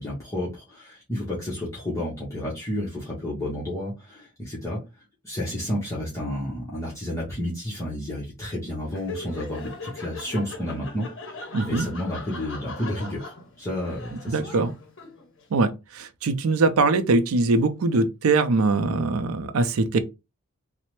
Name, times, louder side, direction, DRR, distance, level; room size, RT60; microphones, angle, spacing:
voice 1, 0.0-4.8 5.2-14.6, left 1 dB, 15° left, 0.8 m, -31 dB
Laughter, 8.9-15.4, left 2 dB, 60° left, 0.7 m, -40 dB
voice 2, 11.5-11.9 14.3-14.7 15.5-20.0, right 3 dB, 85° right, 0.4 m, -22 dB
3.1 x 2.0 x 3.0 m
head